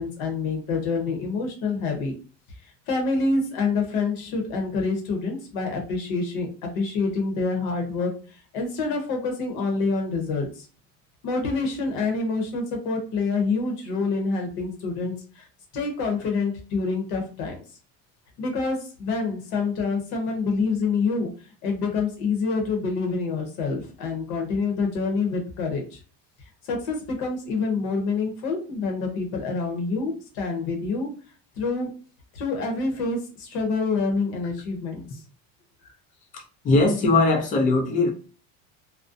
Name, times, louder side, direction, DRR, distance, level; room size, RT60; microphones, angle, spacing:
voice 1, 0.0-2.1 2.9-10.7 11.2-15.4 15.7-17.6 18.4-21.3 21.6-26.0 26.6-31.1 31.6-31.9 32.3-35.2, left 4 dB, 60° left, 0.8 m, -27 dB
voice 2, 36.3-38.1, left 2 dB, 25° left, 0.3 m, -21 dB
2.4 x 2.1 x 2.5 m
cardioid pair, 165°, 38 cm